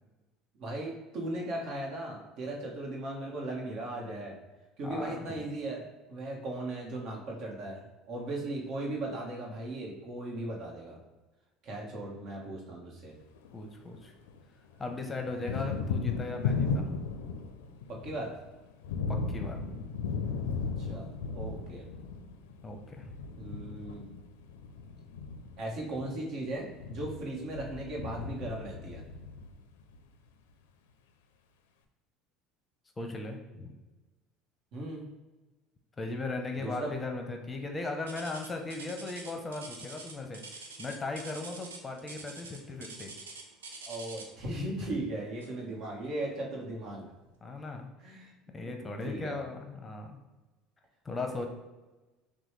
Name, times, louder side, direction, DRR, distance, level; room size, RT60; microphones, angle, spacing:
voice 1, 0.6-4.4 4.8-11.0 11.6-13.1 15.2-15.4 15.7-15.8 17.9-18.3 20.8-21.9 23.4-24.0 25.6-29.0 34.7-35.1 36.6-36.9 43.8-47.0 48.0-48.3 48.6-48.7 49.0-49.4, right 1 dB, 60° right, -1 dB, 1.2 m, -37 dB
voice 2, 4.8-5.5 13.5-14.1 14.8-17.0 19.1-19.8 22.6-23.1 33.0-33.8 36.0-40.4 40.8-43.1 47.4-47.9 48.5-50.2 51.0-51.5, left 3 dB, 20° left, 4 dB, 0.7 m, -37 dB
Thunder, 13.2-14.4 14.7-30.0, left 5 dB, 80° left, 0.4 m, -36 dB
sound 1, 38.1-44.4 45.4-45.7 46.2-46.3 47.0-47.1, right 3 dB, 90° right, 0.6 m, -46 dB
6.1 x 2.3 x 3.2 m, 1.1 s
hypercardioid pair, 75°, 0 cm